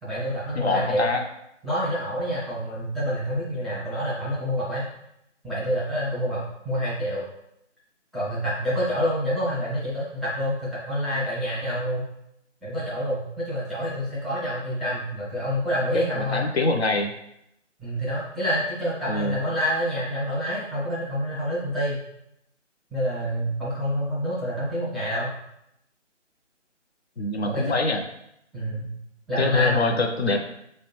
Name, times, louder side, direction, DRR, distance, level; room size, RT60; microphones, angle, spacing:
voice 1, 0.0-1.1 1.6-4.9 5.4-7.2 8.1-12.1 12.6-16.5 17.8-22.0 22.9-25.3 27.4-27.8 28.5-28.9 29.3-30.0, equal, ahead, -9 dB, 0.4 m, -27 dB
voice 2, 0.5-1.2 15.9-17.1 19.1-19.4 27.2-28.0 29.4-30.4, left 3 dB, 60° left, 3 dB, 0.5 m, -24 dB
4.0 x 2.1 x 2.9 m, 0.79 s
hypercardioid pair, 175°, 37 cm